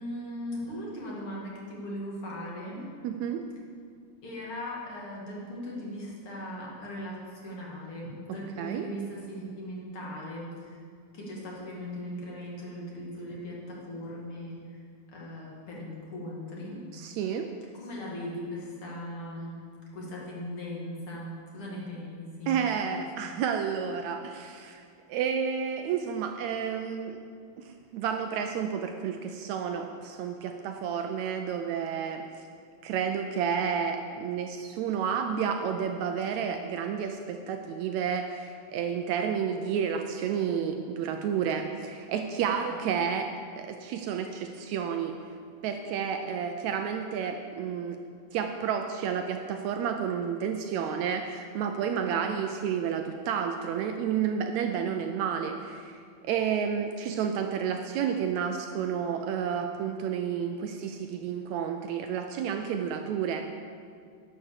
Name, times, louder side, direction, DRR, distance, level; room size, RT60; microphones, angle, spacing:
voice 1, 0.0-2.9 4.2-10.8 11.1-14.8 15.1-16.8 17.8-19.6 19.9-22.6 42.5-42.7 52.0-52.3, equal, 45° left, -4 dB, 2.8 m, -39 dB
voice 2, 3.0-3.4 8.6-8.9 16.9-17.5 22.5-24.8 25.1-27.2 27.6-32.5 32.8-43.3 43.6-45.2 45.6-48.0 48.3-63.5, right 7 dB, 75° right, 5 dB, 1.8 m, -31 dB
11.0 x 6.8 x 7.2 m, 2.2 s
omnidirectional pair, 3.5 m